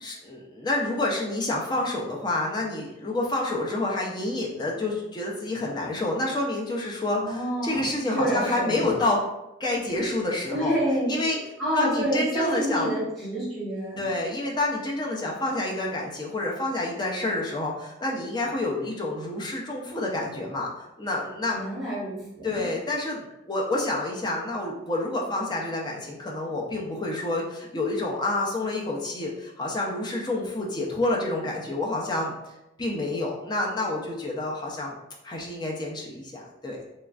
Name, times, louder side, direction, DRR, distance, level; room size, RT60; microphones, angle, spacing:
voice 1, 0.0-9.2 9.6-10.7 11.1-11.4 11.7-12.9 14.0-21.6 22.4-32.5 32.8-34.9 35.2-36.8, left 2 dB, 20° left, -2 dB, 0.4 m, -28 dB
voice 2, 7.2-8.9 10.5-11.1 11.6-14.1 21.5-22.6, equal, ahead, -13 dB, 1.1 m, -28 dB
3.0 x 2.3 x 2.4 m, 0.91 s
head